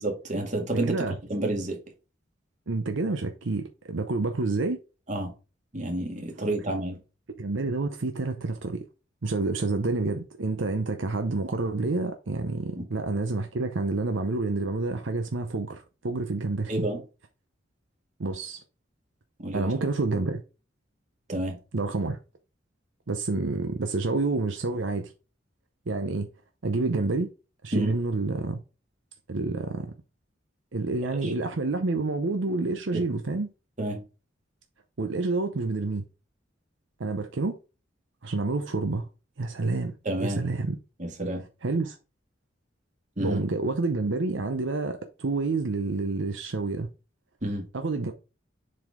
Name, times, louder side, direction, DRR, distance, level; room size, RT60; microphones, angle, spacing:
voice 1, 0.0-0.9 1.3-1.8 5.1-5.3 5.7-7.0 12.8-12.9 16.7-17.0 19.4-19.7 21.3-21.6 27.7-28.0 31.2-31.3 32.9-33.1 33.8-34.0 40.1-40.4 41.0-41.5 43.2-43.4 47.4-47.7, right 1 dB, 40° right, 1.9 m, -29 dB
voice 2, 0.8-1.2 2.7-4.8 7.4-8.8 9.2-16.9 18.2-18.6 19.5-20.4 21.7-22.2 23.1-25.1 25.9-26.3 26.6-27.3 27.6-28.6 29.3-29.9 30.7-33.5 35.0-36.0 37.0-37.6 38.2-39.1 39.4-39.9 40.2-40.8 41.6-42.0 43.2-46.9 47.7-48.1, right 3 dB, 75° right, 0.7 m, -28 dB
7.5 x 4.1 x 3.7 m
head